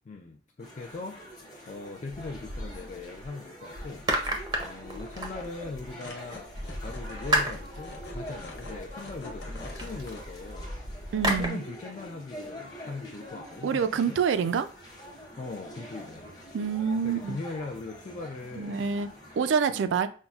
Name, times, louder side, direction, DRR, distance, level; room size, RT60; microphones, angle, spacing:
voice 1, 0.1-4.1 4.6-6.5 6.8-11.0 11.2-14.2 15.4-16.3 17.0-18.9 19.7-20.0, left 3 dB, 40° left, 1 dB, 0.3 m, -40 dB
sound 1, 0.6-19.6, equal, 25° left, 1.0 m, -46 dB
sound 2, 2.1-3.3 3.7-5.9 6.5-11.5, right 1 dB, 20° right, 0.5 m, -33 dB
sound 3, 3.9-4.0 4.4-4.6 4.8-10.2, left 2 dB, 65° left, 0.7 m, -46 dB
voice 2, 11.1-11.6 13.6-14.7 16.5-17.4 18.6-19.1 19.4-20.1, right 6 dB, 90° right, 12 dB, 0.3 m, -26 dB
5.4 x 2.0 x 2.3 m, 0.40 s
head